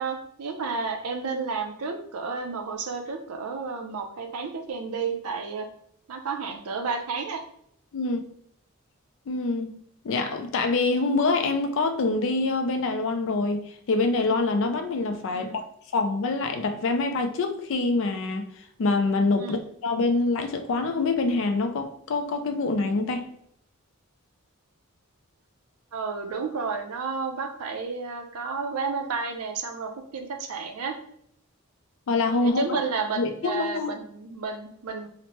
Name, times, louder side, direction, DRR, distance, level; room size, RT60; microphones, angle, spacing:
voice 1, 0.0-5.7 6.1-7.4 15.3-15.6 19.4-19.6 25.9-31.0 32.4-35.1, right 4 dB, 80° right, 0.5 m, -31 dB
voice 2, 7.9-8.2 9.3-9.7 10.0-15.6 15.9-18.5 18.8-23.3 32.1-32.8 33.2-33.9, left 3 dB, 60° left, 0.4 m, -25 dB
2.9 x 2.1 x 3.0 m
head